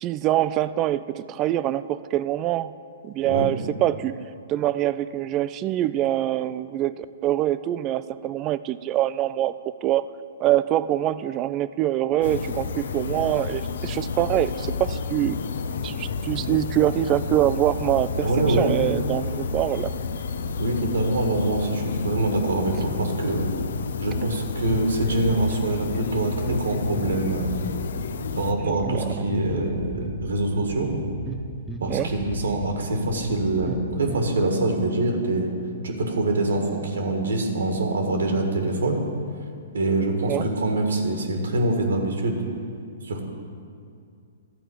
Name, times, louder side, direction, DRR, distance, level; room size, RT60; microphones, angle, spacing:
voice 1, 0.0-2.7 3.0-4.2 4.5-9.5 9.8-10.0 10.4-15.4 15.8-19.9 28.6-29.1 31.9-32.1 40.3-40.4, right 13 dB, 30° right, 14 dB, 0.3 m, -24 dB
sound 1, 12.2-28.5, left 5 dB, 70° left, 0.5 m, -30 dB
voice 2, 18.2-18.7 20.6-23.5 24.0-27.5 28.3-30.9 31.8-35.5 35.8-39.0 39.7-42.4 43.0-43.3, right 2 dB, 80° right, 3 dB, 1.7 m, -24 dB
sound 2, 24.7-34.3, right 1 dB, 10° right, 1.1 m, -36 dB
12.0 x 4.5 x 8.3 m, 2.3 s
hypercardioid pair, 125°, 0 cm